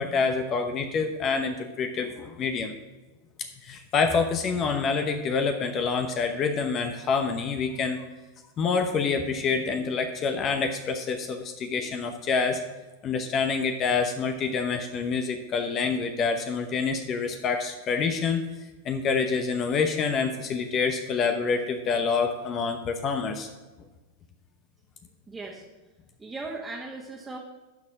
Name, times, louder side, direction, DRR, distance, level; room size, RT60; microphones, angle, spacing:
voice 1, 0.0-2.7 3.6-8.0 8.6-12.6 13.0-18.4 18.8-23.5, left 5 dB, 35° left, 7 dB, 0.9 m, -27 dB
voice 2, 25.3-25.6 26.2-27.4, right 3 dB, 15° right, -3 dB, 1.6 m, -37 dB
12.0 x 4.3 x 7.2 m, 1.2 s
hypercardioid pair, 100°, 0 cm